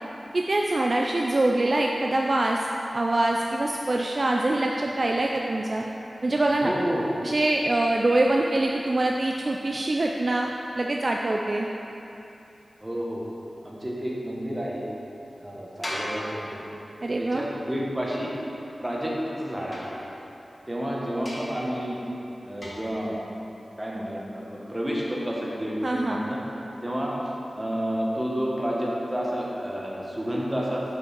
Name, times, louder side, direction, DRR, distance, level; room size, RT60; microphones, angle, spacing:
voice 1, 0.3-2.7 2.9-5.8 6.2-6.7 7.2-11.7 17.0-17.5 25.8-26.3, right 2 dB, 50° right, 0 dB, 0.4 m, -24 dB
voice 2, 6.6-7.0 12.8-13.2 13.6-14.8 15.4-16.8 17.2-18.3 18.8-19.9 20.7-22.0 22.4-23.2 23.8-25.7 26.0-26.4 26.8-27.1 27.5-30.8, equal, 20° right, -4 dB, 1.5 m, -30 dB
sound 1, 15.8-17.2 19.7-20.6 21.2-21.7 22.6-23.1, equal, 40° left, 1.5 m, -38 dB
7.2 x 5.2 x 5.2 m, 3.0 s
wide cardioid pair, 60°, 0 cm